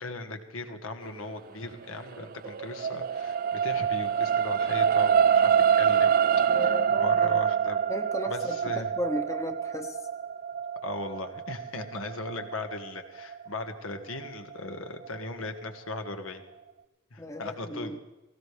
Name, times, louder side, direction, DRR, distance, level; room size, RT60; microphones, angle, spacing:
voice 1, 0.0-6.1 6.5-6.6 7.0-7.8 8.3-8.9 10.8-16.4 17.1-17.9, left 2 dB, 85° left, 5 dB, 1.5 m, -38 dB
sound 1, 2.0-14.5 15.1-15.2, right 8 dB, 45° right, 0.3 m, -26 dB
voice 2, 6.5-7.4 7.9-10.0 17.2-18.0, equal, 15° left, 6 dB, 0.9 m, -35 dB
18.5 x 16.0 x 3.4 m, 1.1 s
head